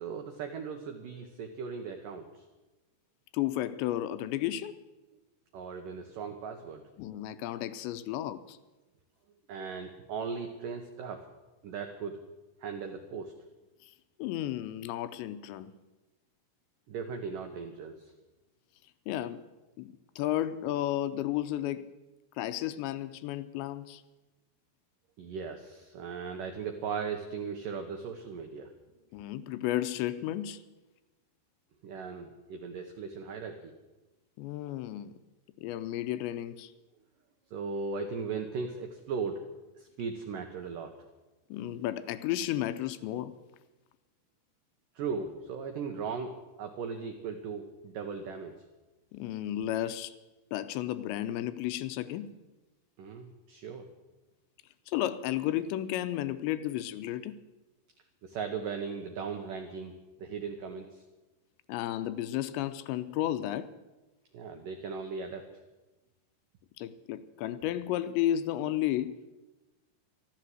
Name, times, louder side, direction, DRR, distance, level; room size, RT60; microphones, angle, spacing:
voice 1, 0.0-2.4 5.5-6.8 9.5-11.3 11.6-12.2 12.6-13.3 16.9-18.1 25.2-28.7 31.8-33.7 37.5-39.4 39.8-40.9 45.0-48.5 53.0-53.9 58.2-61.0 64.3-65.5, right 5 dB, 85° right, 5 dB, 1.9 m, -38 dB
voice 2, 3.3-4.7 7.0-8.6 14.2-15.7 19.1-19.4 19.8-21.9 22.4-24.0 29.1-30.6 34.4-35.1 35.6-36.7 41.5-43.3 49.1-50.1 50.5-52.3 54.9-57.4 61.7-63.7 66.8-69.4, left 13 dB, 80° left, 12 dB, 2.8 m, -33 dB
13.5 x 13.0 x 7.7 m, 1.1 s
omnidirectional pair, 5.3 m